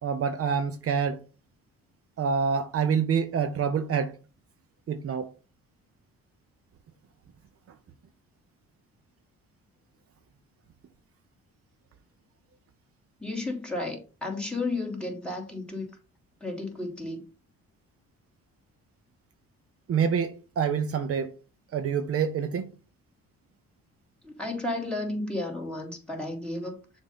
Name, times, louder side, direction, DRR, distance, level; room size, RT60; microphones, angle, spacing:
voice 1, 0.0-1.2 2.2-4.1 4.9-5.3 19.9-21.3 21.7-22.7, right 6 dB, 50° right, 0.6 m, -26 dB
voice 2, 13.2-15.9 16.4-17.2 24.2-26.8, left 2 dB, 5° left, 2.4 m, -33 dB
6.9 x 2.7 x 5.5 m
cardioid pair, 90°, 30 cm